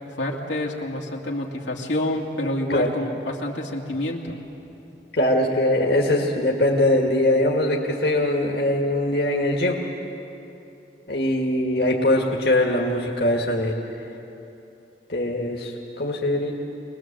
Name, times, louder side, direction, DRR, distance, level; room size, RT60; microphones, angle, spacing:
voice 1, 0.2-4.4, left 1 dB, 85° left, -1 dB, 2.5 m, -28 dB
voice 2, 5.1-9.8 11.1-13.8 15.1-15.7 16.0-16.5, left 1 dB, 60° left, -1 dB, 2.0 m, -21 dB
24.5 x 20.5 x 7.6 m, 2.9 s
head